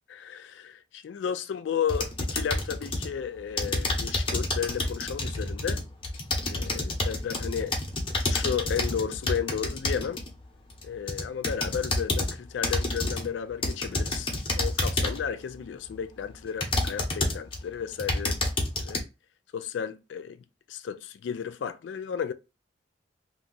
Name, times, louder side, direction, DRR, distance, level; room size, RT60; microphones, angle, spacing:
voice 1, 0.1-5.8 6.4-7.8 8.3-10.2 10.8-14.3 14.5-19.0 19.5-22.3, left 7 dB, 80° left, 0.3 m, -33 dB
sound 1, 1.9-3.1 3.6-10.3 10.8-12.3 12.6-13.3 13.6-15.3 15.9-16.0 16.6-17.6 17.9-19.0, left 2 dB, 30° left, 0.8 m, -29 dB
2.7 x 2.3 x 3.8 m
head